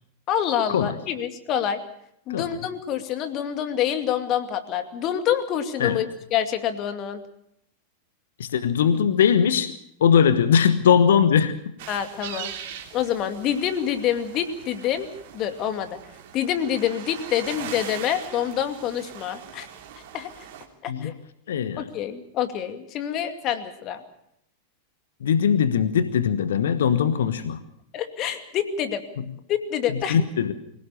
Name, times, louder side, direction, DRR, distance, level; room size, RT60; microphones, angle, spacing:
voice 1, 0.3-1.8 2.3-7.2 11.9-12.5 12.9-15.1 15.3-16.0 16.3-19.7 20.1-20.3 20.8-21.1 21.8-24.0 27.9-29.0 29.5-30.2, left 9 dB, 35° left, 8 dB, 2.4 m, -26 dB
voice 2, 8.4-9.7 10.0-11.6 20.9-21.1 21.5-21.9 25.2-27.6 29.2-29.3 29.9-30.5, left 7 dB, 60° left, 13 dB, 1.2 m, -20 dB
sound 1, 11.8-20.6, right 9 dB, 50° right, 3.5 m, -41 dB
25.0 x 17.5 x 7.0 m, 0.75 s
figure-of-eight pair, 90°, 0 cm